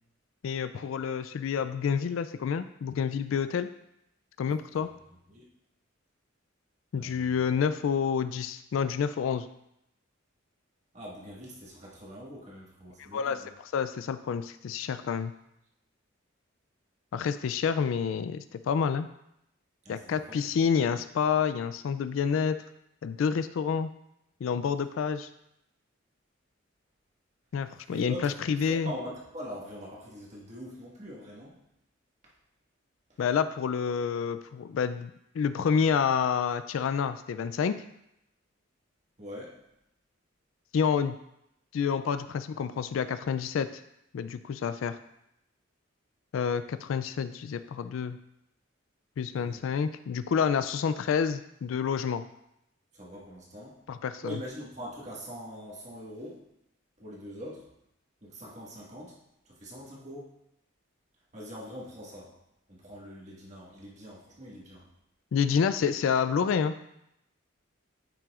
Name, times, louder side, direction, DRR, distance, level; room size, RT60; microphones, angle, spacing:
voice 1, 0.4-3.7 4.4-4.9 6.9-9.5 13.0-13.4 13.7-15.3 17.1-19.1 19.9-22.6 23.0-23.9 24.4-25.3 27.5-28.9 33.2-37.7 40.7-41.2 41.7-43.7 44.1-45.0 46.3-48.2 49.2-52.2 53.9-54.4 65.3-66.7, left 6 dB, 80° left, 11 dB, 0.3 m, -28 dB
voice 2, 6.9-7.4 10.9-13.5 19.8-20.4 27.9-28.3 28.6-31.6 32.2-32.3 33.1-33.2 39.2-39.6 49.3-49.6 52.9-53.8 54.2-56.4 57.0-57.7 58.2-59.2 59.4-60.3 61.3-62.4 62.7-64.9, equal, 35° right, -4 dB, 1.6 m, -43 dB
8.9 x 5.9 x 2.4 m, 0.81 s
head